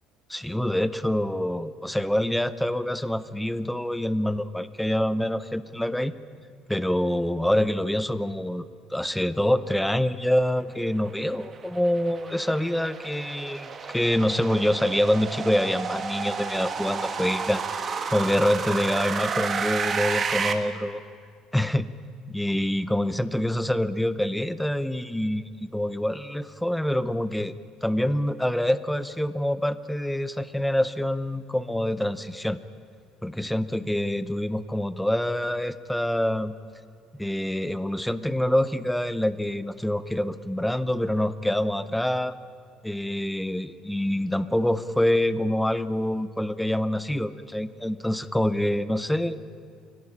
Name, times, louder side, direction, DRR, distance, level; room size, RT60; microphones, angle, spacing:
voice 1, 0.3-6.1 6.7-21.0 21.5-21.9 22.3-27.5 27.8-32.6 33.2-36.5 37.2-42.4 42.8-49.4, left 1 dB, ahead, 14 dB, 0.6 m, -26 dB
sound 1, 11.0-20.5, right 5 dB, 25° right, 1.4 m, -31 dB
23.0 x 17.5 x 9.9 m, 2.2 s
cardioid pair, 165°, 0 cm